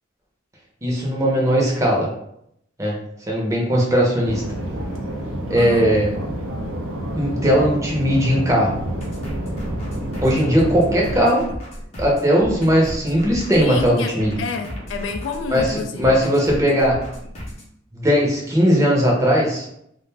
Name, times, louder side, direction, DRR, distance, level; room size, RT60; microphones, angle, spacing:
voice 1, 0.8-2.1 2.8-3.0 3.3-4.4 5.5-6.1 7.1-8.8 10.2-11.5 12.0-14.4 15.5-17.0 17.9-19.7, equal, 15° right, -3 dB, 0.6 m, -18 dB
sound 1, 4.2-11.2, right 1 dB, 80° right, 0.5 m, -29 dB
voice 2, 5.6-5.9 13.6-16.2, left 4 dB, 75° left, 5 dB, 0.3 m, -29 dB
sound 2, 8.8-17.7, equal, 35° left, 0.6 m, -34 dB
2.4 x 2.2 x 3.2 m, 0.75 s
head